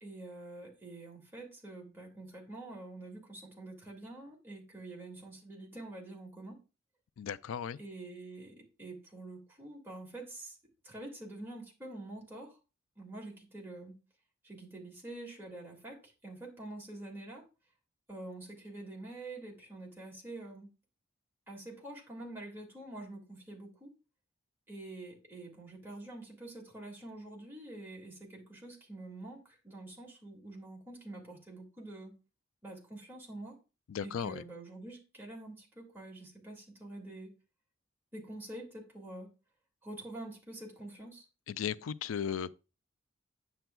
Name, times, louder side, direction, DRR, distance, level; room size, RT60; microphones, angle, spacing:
voice 1, 0.0-6.6 7.8-10.6 10.8-12.6 13.0-13.9 14.4-17.4 18.1-20.7 21.5-23.9 24.7-32.1 32.6-33.6 34.0-37.3 38.1-39.3 39.8-41.3, right 2 dB, 10° right, 2.1 m, -46 dB
voice 2, 7.2-7.8 33.9-34.4 41.5-42.5, left 8 dB, 80° left, 0.4 m, -36 dB
9.1 x 7.0 x 2.3 m
head